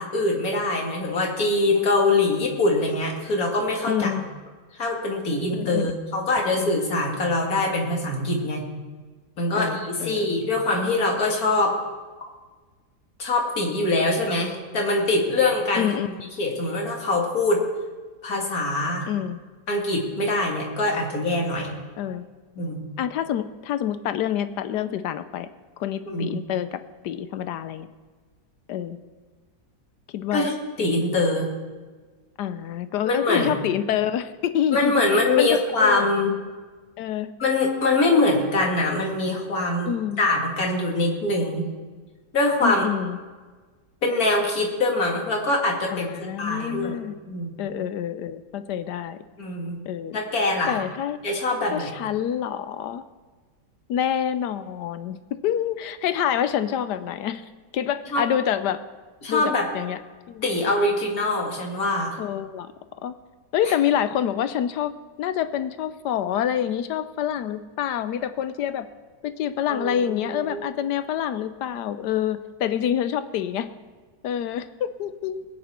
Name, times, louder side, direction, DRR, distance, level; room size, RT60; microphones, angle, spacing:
voice 1, 0.0-4.2 4.7-8.6 9.4-11.7 12.2-12.3 13.2-15.9 16.4-17.6 18.2-19.1 19.7-21.7 22.6-22.9 26.1-26.4 30.3-31.5 33.0-33.6 34.7-36.3 37.4-41.7 42.3-42.9 44.0-46.1 46.4-47.0 47.3-47.5 49.4-49.8 50.1-50.8 51.2-51.9 58.1-58.2 59.2-59.7 60.4-62.2 69.7-70.6, left 2 dB, 50° left, -1 dB, 2.6 m, -23 dB
voice 2, 3.9-4.2 5.5-5.9 6.6-6.7 9.6-10.6 15.8-16.1 19.1-19.4 22.0-22.2 23.0-25.5 25.8-27.9 28.7-29.0 30.1-30.5 32.4-34.9 35.4-36.1 37.0-37.3 39.9-40.2 42.6-43.2 45.9-47.2 47.6-49.2 49.9-50.2 50.7-51.2 51.7-53.0 53.9-55.2 55.4-57.4 57.7-58.8 59.3-60.0 60.3-60.4 62.2-62.7 63.0-63.1 63.5-64.9 65.2-68.9 69.2-73.7 74.2-75.4, left 10 dB, 75° left, 12 dB, 1.2 m, -27 dB
21.0 x 9.4 x 4.3 m, 1.4 s
omnidirectional pair, 1.9 m